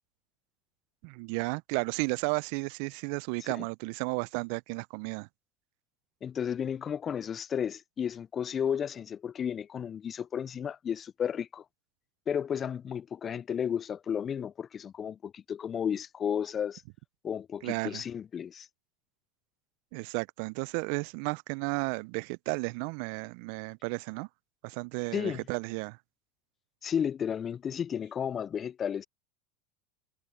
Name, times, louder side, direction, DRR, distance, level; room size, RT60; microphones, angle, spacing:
voice 1, 1.0-5.3 17.6-18.0 19.9-24.3 24.6-26.0, right 31 dB, 60° right, 0.5 m, -33 dB
voice 2, 6.2-11.6 12.3-16.8 17.2-18.7 25.1-25.4 26.8-29.0, left 8 dB, 30° left, 0.3 m, -33 dB
hypercardioid pair, 90°, 0 cm